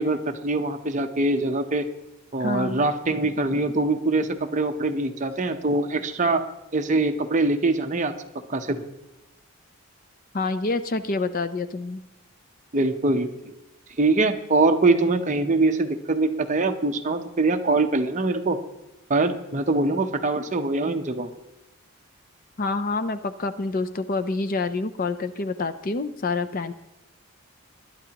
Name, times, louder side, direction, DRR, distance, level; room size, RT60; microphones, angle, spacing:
voice 1, 0.0-1.9 2.3-6.4 6.7-8.1 8.5-8.8 12.7-13.3 14.0-18.6 19.1-21.3, right 2 dB, 35° right, 6 dB, 0.8 m, -23 dB
voice 2, 2.4-2.8 10.3-12.0 22.6-26.7, left 3 dB, 40° left, 11 dB, 0.5 m, -27 dB
20.5 x 11.0 x 2.9 m, 0.93 s
head